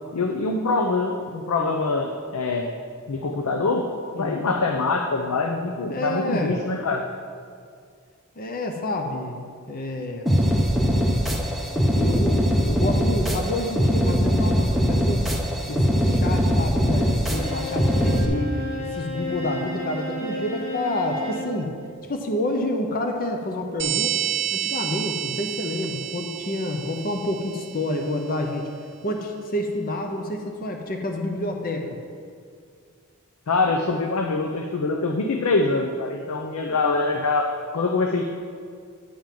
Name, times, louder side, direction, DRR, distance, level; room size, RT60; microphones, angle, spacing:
voice 1, 0.1-2.7 3.1-3.9 4.1-7.0 33.5-38.3, left 3 dB, 80° left, 4 dB, 0.6 m, -24 dB
voice 2, 4.2-4.5 5.9-6.5 8.4-10.3 11.9-15.3 15.7-18.5 18.8-21.7 22.1-24.2 24.5-28.7 29.0-32.0, left 1 dB, 40° left, 3 dB, 0.7 m, -28 dB
sound 1, 10.3-18.3, equal, ahead, 0.8 m, -21 dB
Bowed string instrument, 17.3-21.6, equal, 25° left, 1.6 m, -32 dB
sound 2, 23.8-28.1, right 11 dB, 55° right, 0.7 m, -29 dB
10.0 x 3.8 x 7.4 m, 2.2 s
head